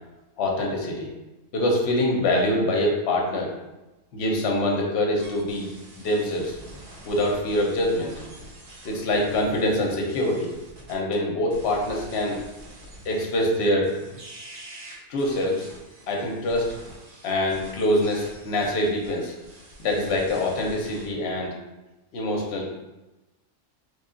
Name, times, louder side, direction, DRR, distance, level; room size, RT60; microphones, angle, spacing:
voice 1, 0.4-1.1 1.5-3.5 4.1-5.7 6.0-6.6 7.0-8.1 8.8-10.5 10.9-12.4 13.0-13.9 15.1-15.7 16.1-16.7 17.2-19.3 19.8-21.6 22.1-22.8, left 1 dB, 55° left, -1 dB, 0.8 m, -24 dB
sound 1, 5.2-11.1 11.5-21.1, right 1 dB, 45° right, 0.8 m, -45 dB
3.3 x 2.3 x 3.7 m, 1.0 s
omnidirectional pair, 1.5 m